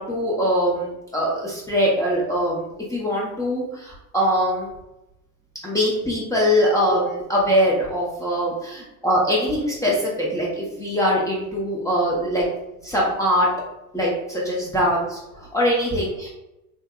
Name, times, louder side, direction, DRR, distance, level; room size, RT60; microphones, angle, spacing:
voice 1, 0.0-4.7 5.6-12.4 12.8-13.5 13.9-16.3, equal, 5° left, -6 dB, 0.8 m, -22 dB
3.6 x 2.6 x 2.3 m, 0.92 s
hypercardioid pair, 80°, 43 cm